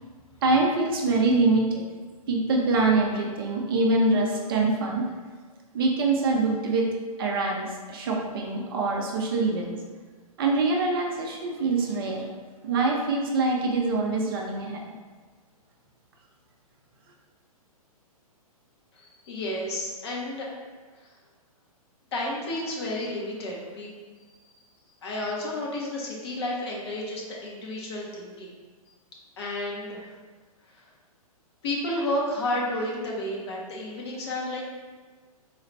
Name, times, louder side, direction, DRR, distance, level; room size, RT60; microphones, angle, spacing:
voice 1, 0.4-1.9 2.3-5.1 5.7-6.9 7.2-9.8 10.4-12.3 12.6-14.9, right 3 dB, 40° right, -1 dB, 0.5 m, -24 dB
voice 2, 18.9-20.6 21.0-21.1 22.1-24.0 25.0-28.5 29.4-30.1 30.7-30.9 31.6-34.6, left 1 dB, 45° left, -3 dB, 0.9 m, -31 dB
3.9 x 2.4 x 3.2 m, 1.4 s
figure-of-eight pair, 115°, 19 cm